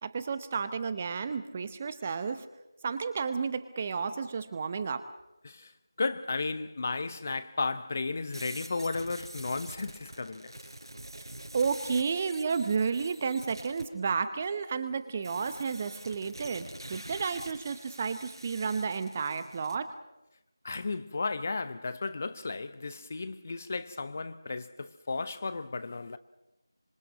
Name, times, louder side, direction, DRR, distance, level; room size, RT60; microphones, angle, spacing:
voice 1, 0.0-2.5 2.8-5.1 11.5-19.9, right 5 dB, 15° right, 0.8 m, -32 dB
voice 2, 6.0-10.5 20.6-26.2, left 3 dB, 30° left, 0.8 m, -34 dB
sound 1, 8.3-13.8 15.2-19.8, right 1 dB, 75° right, 4.9 m, -46 dB
26.0 x 25.0 x 6.5 m
figure-of-eight pair, 170°, 2 cm